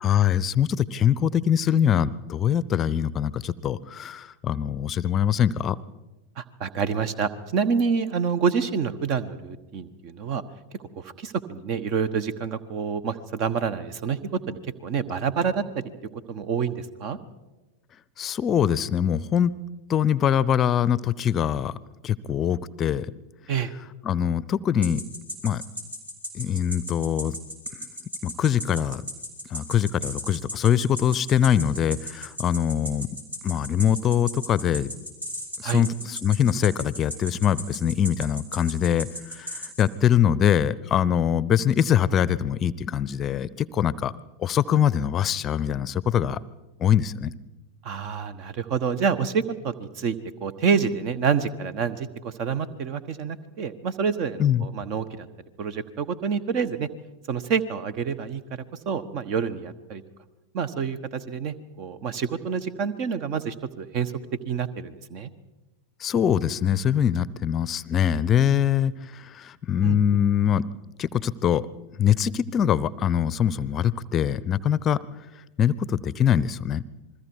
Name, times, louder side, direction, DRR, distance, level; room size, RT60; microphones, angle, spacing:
voice 1, 0.0-5.8 18.2-19.5 19.9-21.7 22.0-23.1 24.0-25.0 25.4-25.6 26.3-27.4 28.2-29.0 29.5-33.1 33.4-34.9 35.6-39.1 39.4-44.1 44.4-46.4 46.8-47.3 54.4-54.6 66.0-70.7 71.0-71.6 72.0-75.0 75.6-76.8, left 9 dB, 30° left, 20 dB, 0.7 m, -23 dB
voice 2, 6.4-10.4 11.0-15.8 16.3-17.2 23.5-23.7 35.6-35.8 47.8-55.3 55.6-56.9 57.3-58.4 58.8-60.0 60.5-64.1 64.4-65.3 69.8-70.0, right 6 dB, 40° right, 15 dB, 1.2 m, -27 dB
sound 1, 24.8-39.8, equal, 75° right, 4.9 m, -35 dB
28.0 x 21.5 x 4.7 m, 1.1 s
figure-of-eight pair, 90°, 0 cm